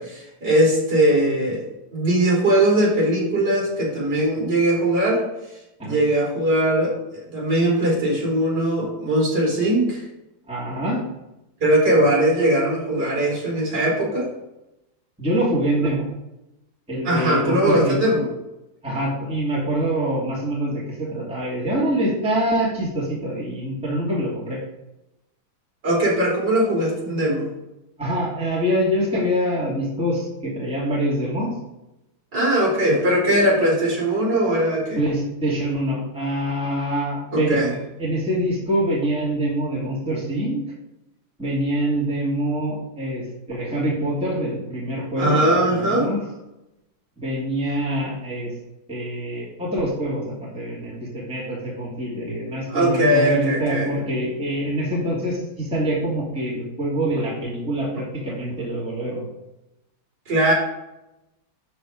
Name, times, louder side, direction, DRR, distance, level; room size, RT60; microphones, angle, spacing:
voice 1, 0.0-1.7 1.9-5.2 5.8-10.0 11.6-14.3 17.0-18.3 25.8-27.5 32.3-35.0 37.3-37.7 45.2-46.1 52.7-53.9 60.3-60.5, right 1 dB, 50° right, -5 dB, 4.0 m, -20 dB
voice 2, 10.5-11.0 15.2-16.1 16.9-18.0 18.8-24.6 28.0-31.5 35.0-37.6 38.0-40.6 41.4-46.2 47.2-48.5 48.9-59.3, right 1 dB, 5° right, -6 dB, 2.7 m, -25 dB
12.0 x 4.4 x 5.1 m, 0.92 s
omnidirectional pair, 2.3 m